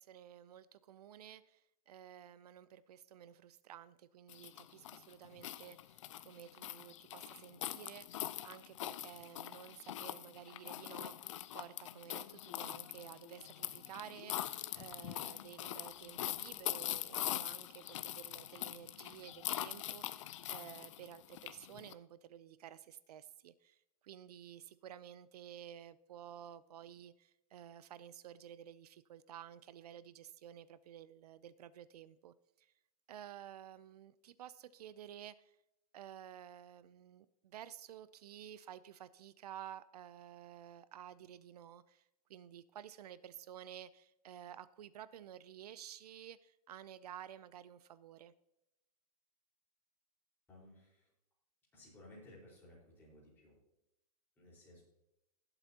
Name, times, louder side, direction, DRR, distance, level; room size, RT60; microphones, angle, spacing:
voice 1, 0.0-32.7 33.1-35.6 35.9-48.3, right 10 dB, 75° right, 0.6 m, -53 dB
sound 1, 4.3-21.9, left 13 dB, 50° left, 0.5 m, -43 dB
voice 2, 50.5-51.1 51.7-53.6 54.4-54.8, left 1 dB, 10° left, 4.6 m, -58 dB
19.5 x 8.0 x 2.9 m
supercardioid pair, 175°, 20 cm